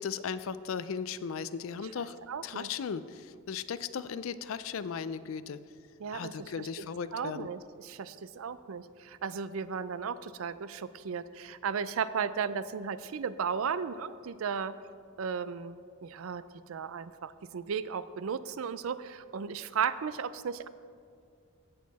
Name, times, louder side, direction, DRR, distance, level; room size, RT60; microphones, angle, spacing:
voice 1, 0.0-5.6 6.1-7.5, left 6 dB, 75° left, 14 dB, 0.4 m, -37 dB
voice 2, 2.3-2.7 6.0-6.8 7.1-14.7 15.2-20.7, right 6 dB, 75° right, 15 dB, 0.4 m, -35 dB
16.5 x 6.5 x 4.1 m, 2.3 s
head